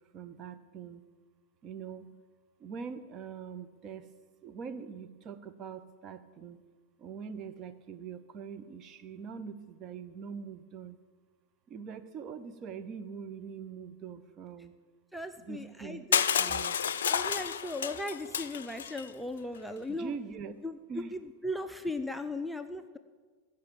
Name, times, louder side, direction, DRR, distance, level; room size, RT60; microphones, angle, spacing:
voice 1, 0.1-1.0 1.6-2.1 2.6-4.1 4.4-6.6 7.0-11.0 11.7-14.7 15.5-16.8 19.9-20.5 20.9-21.1, right 6 dB, 30° right, 9 dB, 0.7 m, -43 dB
voice 2, 15.1-16.6 17.0-20.1 20.6-23.0, left 1 dB, ahead, 8 dB, 0.5 m, -38 dB
Crushing, 16.1-19.0, left 8 dB, 60° left, 0.4 m, -30 dB
15.5 x 5.7 x 9.1 m, 1.5 s
figure-of-eight pair, 90°, 0 cm